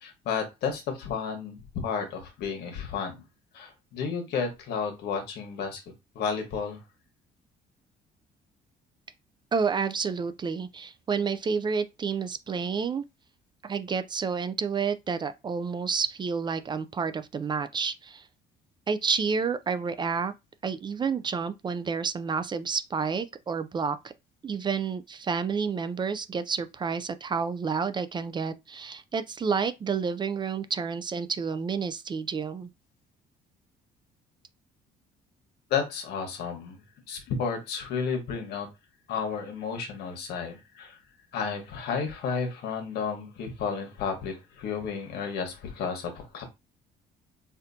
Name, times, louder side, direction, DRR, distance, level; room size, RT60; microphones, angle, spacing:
voice 1, 0.0-3.2 3.5-5.8 6.1-6.8 35.7-36.8 37.1-38.7 39.1-41.0 41.3-46.4, left 6 dB, 75° left, 1.3 m, -32 dB
voice 2, 9.5-13.0 13.6-18.3 18.9-20.3 20.6-24.1 24.4-32.7, right 5 dB, 25° right, 0.3 m, -30 dB
4.2 x 2.5 x 2.7 m
cardioid pair, 110°, 17 cm